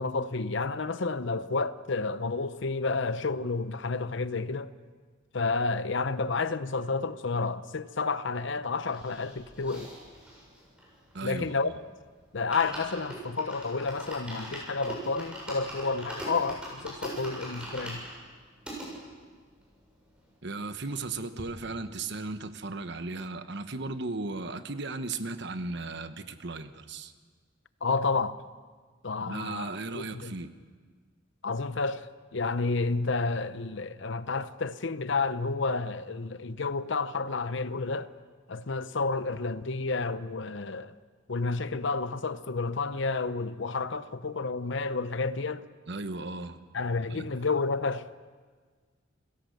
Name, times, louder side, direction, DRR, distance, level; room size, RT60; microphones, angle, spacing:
voice 1, 0.0-4.7 5.3-9.9 11.2-11.7 12.3-18.0 27.8-28.4 29.0-30.3 31.4-38.1 38.5-40.9 41.3-45.6 46.7-48.1, left 4 dB, 60° left, 0.8 m, -30 dB
sound 1, 8.9-11.7 12.0-12.1 12.3-18.9 19.5-19.6 19.7-19.8 20.1-21.1 21.4-21.5, right 1 dB, 5° right, 7.5 m, -41 dB
voice 2, 11.1-11.8 20.4-27.1 29.2-30.5 45.9-46.6 47.1-47.3, right 3 dB, 55° right, 1.2 m, -36 dB
30.0 x 17.0 x 6.7 m
head